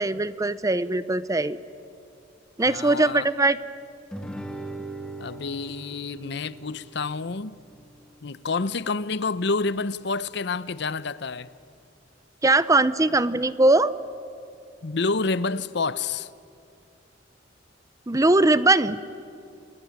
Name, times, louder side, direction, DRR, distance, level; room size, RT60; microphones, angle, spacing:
voice 1, 0.0-1.6 2.6-3.6 12.4-13.9 18.1-19.0, right 2 dB, 20° right, 0.7 m, -20 dB
voice 2, 2.7-3.3 5.2-7.6 8.2-11.5 14.8-16.3, left 4 dB, 65° left, 0.8 m, -28 dB
Guitar, 4.1-9.2, right 1 dB, 5° left, 1.8 m, -41 dB
29.0 x 21.0 x 9.6 m
head